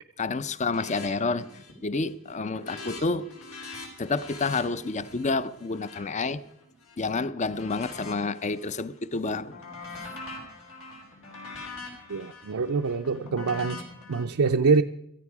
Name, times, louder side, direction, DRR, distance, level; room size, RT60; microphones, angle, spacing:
voice 1, 0.2-3.3 4.0-6.4 7.0-9.6, left 3 dB, 35° left, 0.6 m, -29 dB
sound 1, 0.6-1.1 1.4-1.8 2.1-6.9 7.4-8.8 9.1-14.2, left 3 dB, 90° left, 4.5 m, -43 dB
voice 2, 12.1-13.8 14.1-14.8, right 4 dB, 70° right, 0.5 m, -25 dB
17.0 x 13.5 x 4.8 m
head